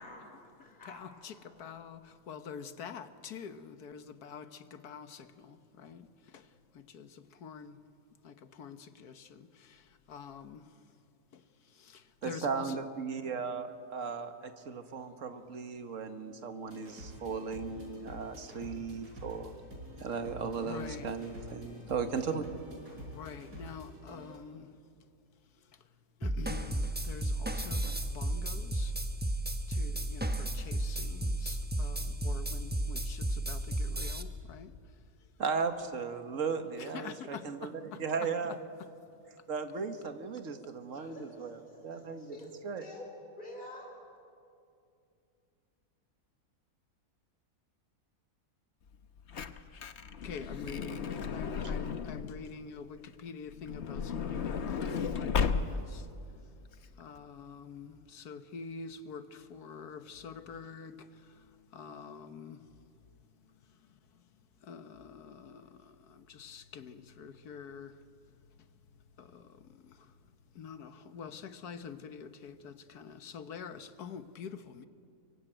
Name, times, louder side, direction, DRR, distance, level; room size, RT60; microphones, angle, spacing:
voice 1, 0.0-1.8 41.1-42.5 42.8-43.1 43.4-44.0, left 1 dB, 30° left, 0 dB, 5.4 m, -49 dB
voice 2, 0.6-7.8 8.2-10.8 11.3-12.8 20.6-21.1 23.0-24.7 25.6-25.8 26.2-29.0 29.7-35.3 36.8-38.3 38.8-38.9 40.9-41.1 50.2-56.5 56.9-62.7 63.4-68.0 68.3-68.7 69.2-70.2 70.5-74.9, left 6 dB, 80° left, 10 dB, 1.7 m, -47 dB
voice 3, 12.2-19.5 20.0-22.4 35.4-38.5 39.5-42.4 42.6-42.8, right 5 dB, 55° right, 8 dB, 1.8 m, -36 dB
sound 1, 16.7-24.4, equal, 85° right, 6.3 m, -48 dB
sound 2, 26.2-34.2, right 1 dB, 10° right, 0.8 m, -33 dB
Truck / Door, 48.9-52.5 53.5-56.0 56.7-56.8 57.0-57.2, left 6 dB, 50° left, 1.1 m, -34 dB
25.0 x 23.5 x 9.1 m, 2.5 s
omnidirectional pair, 1.6 m